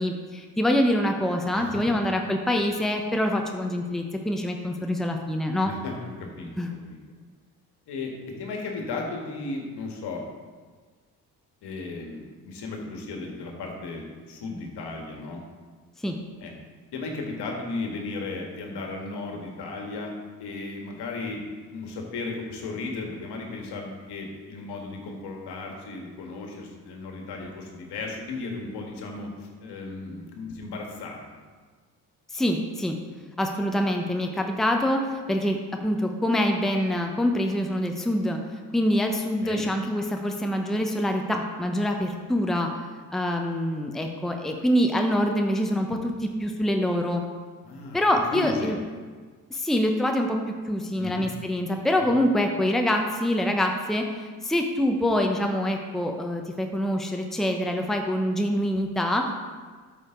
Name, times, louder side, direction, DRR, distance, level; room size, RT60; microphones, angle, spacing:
voice 1, 0.0-5.7 6.6-6.7 16.0-16.1 32.3-32.9 33.4-35.6 35.8-38.4 38.7-42.7 43.1-47.2 47.9-48.8 49.5-50.4 50.7-54.0 54.4-59.2, left 1 dB, ahead, 3 dB, 1.0 m, -25 dB
voice 2, 1.5-1.9 5.6-7.0 7.9-10.2 11.6-15.4 16.4-16.5 16.9-20.1 20.4-21.4 21.7-31.4 39.4-39.6 47.6-48.0 48.3-48.7 51.0-51.3 52.0-52.1, left 3 dB, 60° left, 1 dB, 1.9 m, -35 dB
13.0 x 5.0 x 3.9 m, 1.5 s
hypercardioid pair, 45°, 45 cm